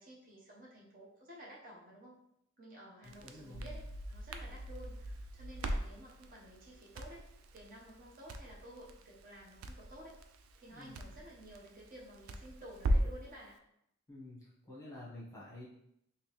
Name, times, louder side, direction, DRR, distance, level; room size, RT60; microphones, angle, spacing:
voice 1, 0.0-2.2 2.6-7.2 7.5-10.2 10.5-13.6, right 1 dB, 40° right, -4 dB, 0.8 m, -53 dB
voice 2, 3.0-3.7 10.7-10.9 14.1-15.7, left 2 dB, 15° left, -8 dB, 1.0 m, -50 dB
Crackle, 3.0-13.3, right 1 dB, 75° right, 0.4 m, -39 dB
3.3 x 2.8 x 3.2 m, 0.76 s
head